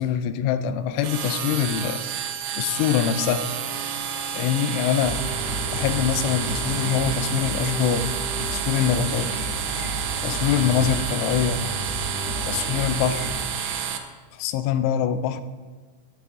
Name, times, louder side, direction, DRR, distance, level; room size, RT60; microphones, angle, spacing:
voice 1, 0.0-2.0 2.6-3.5 4.2-5.2 5.7-8.1 8.5-9.4 10.2-11.7 12.4-13.3 14.4-15.4, left 9 dB, 90° left, 3.0 m, -24 dB
sound 1, 1.0-14.0, right 8 dB, 80° right, 3.0 m, -30 dB
sound 2, 4.0-13.8, left 1 dB, 60° left, 0.8 m, -48 dB
sound 3, 5.0-13.3, equal, 25° left, 2.4 m, -32 dB
13.5 x 8.4 x 3.6 m
omnidirectional pair, 5.4 m